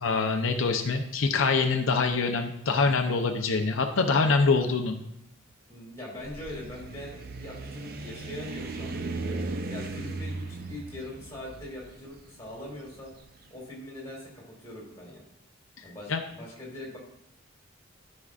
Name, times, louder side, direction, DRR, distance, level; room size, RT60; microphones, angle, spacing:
voice 1, 0.0-5.0 15.8-16.2, left 4 dB, 80° left, 4 dB, 0.6 m, -25 dB
voice 2, 5.7-8.9 9.7-13.1 13.5-15.2 15.8-17.0, left 1 dB, 15° left, -4 dB, 2.6 m, -42 dB
sound 1, 6.1-13.3, right 3 dB, 45° right, 0.5 m, -37 dB
13.0 x 5.3 x 2.4 m, 0.78 s
head